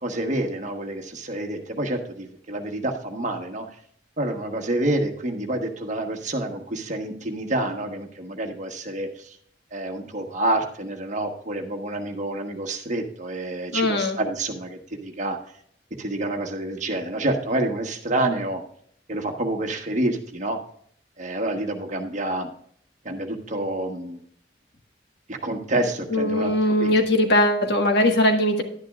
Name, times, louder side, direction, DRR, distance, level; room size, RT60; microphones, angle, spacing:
voice 1, 0.0-3.7 4.2-9.4 9.7-15.4 16.0-18.6 19.1-20.6 21.2-22.5 23.0-24.2 25.3-27.0, right 1 dB, 40° right, 4 dB, 1.3 m, -28 dB
voice 2, 13.7-14.2 26.1-28.6, left 1 dB, 65° left, 4 dB, 1.5 m, -20 dB
11.0 x 10.5 x 2.4 m, 0.63 s
head